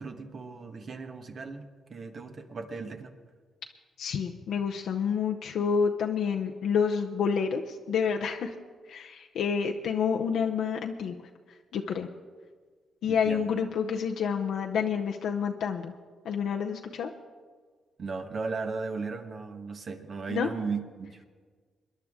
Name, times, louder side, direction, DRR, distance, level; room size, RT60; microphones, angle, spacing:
voice 1, 0.0-1.6 1.9-3.1 13.0-13.5 18.0-21.2, right 4 dB, 55° right, 6 dB, 1.3 m, -36 dB
voice 2, 4.0-8.5 8.9-11.1 11.7-12.1 13.0-15.9 16.2-17.1 20.3-20.5, left 6 dB, 80° left, 2 dB, 0.7 m, -28 dB
22.0 x 10.5 x 3.7 m, 1.5 s
supercardioid pair, 60°, 0 cm